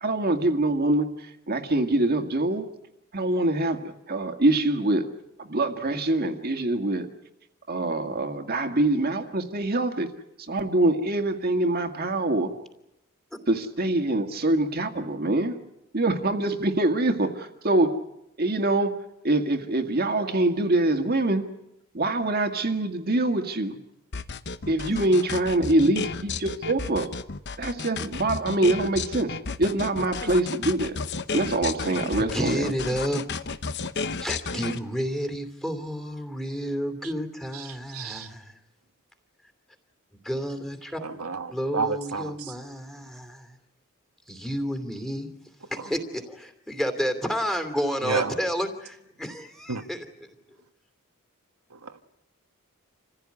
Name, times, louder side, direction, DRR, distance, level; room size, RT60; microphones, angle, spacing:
voice 1, 0.0-2.7 3.1-5.1 5.4-7.1 7.7-10.1 10.4-12.5 13.5-15.6 15.9-18.0 18.4-19.0 19.2-21.5 21.9-23.8 24.7-27.1 27.6-31.0 31.3-32.7, right 2 dB, 45° right, 1.9 m, -24 dB
sound 1, 24.1-34.8, left 4 dB, 50° left, 1.0 m, -32 dB
voice 2, 32.2-33.2 34.2-38.5 40.2-41.0 41.5-43.5 44.3-45.3 45.7-50.0, equal, ahead, 2.8 m, -30 dB
voice 3, 37.5-38.3 41.2-42.5 45.8-45.9 48.0-48.3 49.7-49.9 51.7-52.0, right 4 dB, 90° right, 1.5 m, -31 dB
27.5 x 15.5 x 9.7 m
head